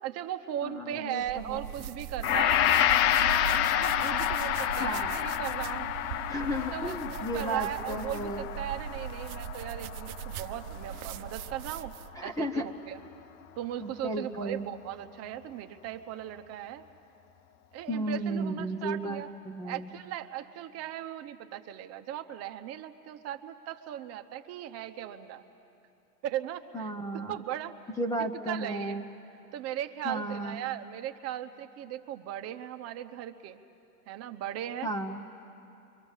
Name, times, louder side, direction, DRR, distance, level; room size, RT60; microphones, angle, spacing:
voice 1, 0.0-2.6 3.7-5.9 6.7-11.9 12.2-13.0 13.6-16.9 17.7-19.3 19.6-25.4 26.2-27.9 28.5-29.0 29.5-33.6 34.1-34.9, right 11 dB, 30° right, 7 dB, 0.9 m, -38 dB
voice 2, 0.6-1.7 4.6-5.1 6.3-8.5 12.2-12.6 13.8-14.7 17.9-19.9 26.7-27.3 28.0-29.0 30.0-30.6 34.8-35.2, right 1 dB, 5° left, 3 dB, 0.7 m, -34 dB
sound 1, 1.2-12.2, right 9 dB, 60° right, 0.8 m, -40 dB
Gong, 2.2-10.7 11.0-11.2, left 11 dB, 45° left, 0.8 m, -29 dB
29.5 x 24.0 x 7.3 m, 2.8 s
hypercardioid pair, 125°, 48 cm